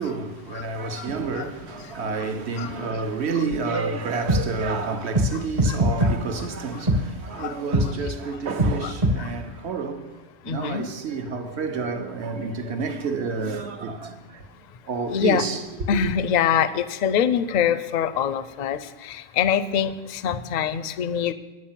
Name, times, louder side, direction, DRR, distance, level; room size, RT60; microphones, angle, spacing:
voice 1, 0.0-10.2 10.4-14.5 14.8-15.6 16.0-16.1, right 4 dB, 65° right, 1.2 m, -29 dB
sound 1, 3.5-3.6 4.3-4.4 5.2-5.3 5.6-6.1 6.9-7.0 7.7-7.9 8.6-8.7 9.0-9.2, equal, 40° right, 1.5 m, -19 dB
voice 2, 10.5-10.9 15.1-15.4 15.9-21.3, left 8 dB, 55° left, 0.5 m, -24 dB
9.4 x 8.5 x 7.4 m
omnidirectional pair, 1.2 m